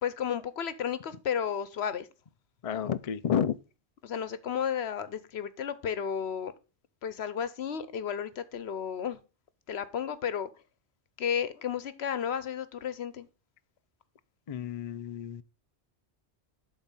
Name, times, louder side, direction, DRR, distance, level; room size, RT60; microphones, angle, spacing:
voice 1, 0.0-2.1 4.0-6.5 7.0-9.2 9.7-10.5 11.2-13.3, left 8 dB, 70° left, 1.1 m, -33 dB
voice 2, 2.6-3.6 14.5-15.4, left 8 dB, 50° left, 0.4 m, -30 dB
11.5 x 4.2 x 5.3 m
omnidirectional pair, 1.1 m